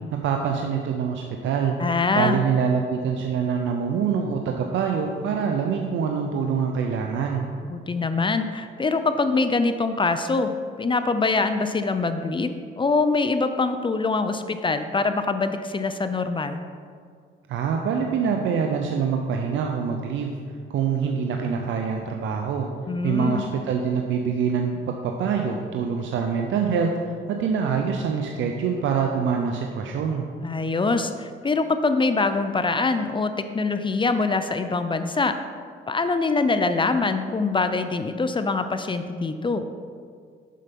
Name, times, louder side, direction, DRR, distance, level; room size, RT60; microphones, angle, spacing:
voice 1, 0.1-1.8 2.1-7.5 17.5-20.3 20.7-22.7 23.0-30.3, right 6 dB, 75° right, 3 dB, 0.6 m, -25 dB
voice 2, 1.8-2.4 7.7-16.6 22.9-23.5 30.4-35.3 35.9-39.6, left 3 dB, 25° left, 9 dB, 0.5 m, -24 dB
7.5 x 5.6 x 5.3 m, 2.1 s
cardioid pair, 90°, 20 cm